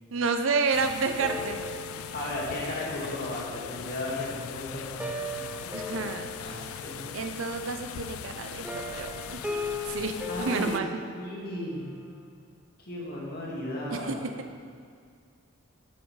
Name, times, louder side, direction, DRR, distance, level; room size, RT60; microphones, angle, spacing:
voice 1, 0.1-1.6 5.7-6.3 7.1-9.4 9.8-10.9 13.9-14.2, right 4 dB, 65° right, 6 dB, 0.6 m, -30 dB
sound 1, 0.7-10.8, left 9 dB, 85° left, 0.3 m, -40 dB
sound 2, 1.2-4.2 4.7-7.5 8.6-11.9, left 1 dB, 5° right, 0.5 m, -38 dB
voice 2, 2.1-5.8 6.4-7.0 10.3-10.8 11.2-11.8 12.8-14.2, left 1 dB, 50° left, -4 dB, 1.9 m, -35 dB
8.3 x 6.5 x 4.7 m, 2.2 s
head